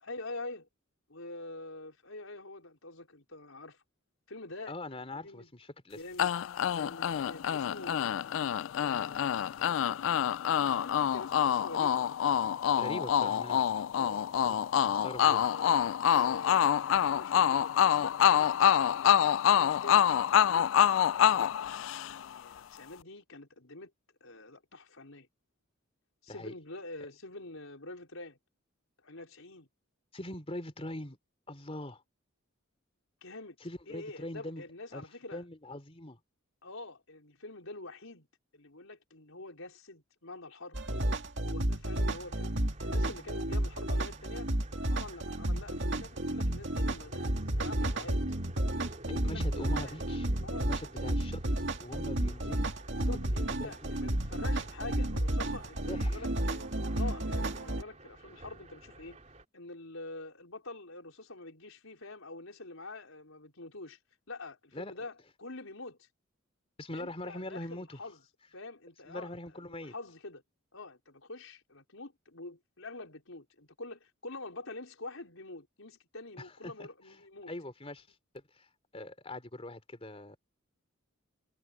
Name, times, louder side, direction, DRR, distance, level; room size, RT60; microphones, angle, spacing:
voice 1, 0.0-0.7 1.1-3.8 4.3-4.8 5.2-5.5 5.9-6.3 6.7-8.1 8.8-10.0 10.7-12.2 13.9-14.2 15.4-16.6 17.1-19.2 19.5-20.6 21.2-23.9 24.2-25.3 26.2-28.4 29.0-29.7 33.2-33.6 33.9-35.4 36.6-38.3 38.5-40.8 41.4-44.5 44.9-48.2 49.2-49.4 49.7-50.0 50.4-50.7 53.0-56.7 56.9-59.2 59.5-64.0 64.3-66.1 66.9-68.2 68.5-70.4 70.7-77.5, left 2 dB, 85° left, 4.9 m, -46 dB
voice 2, 4.7-6.0 12.7-13.9 14.4-16.0 26.3-26.5 30.1-31.2 31.5-32.0 33.6-34.6 34.9-35.0 35.3-36.2 49.1-50.3 50.6-53.9 55.9-56.2 64.7-64.9 66.8-68.0 69.1-69.9 76.4-77.2 77.5-78.1 78.3-78.7 78.9-80.4, left 1 dB, 30° left, 3.3 m, -43 dB
sound 1, 6.2-22.4, left 9 dB, 70° left, 0.3 m, -26 dB
sound 2, 40.7-57.8, right 1 dB, 60° right, 2.2 m, -32 dB
sound 3, 42.0-59.4, right 1 dB, 35° right, 3.4 m, -52 dB
head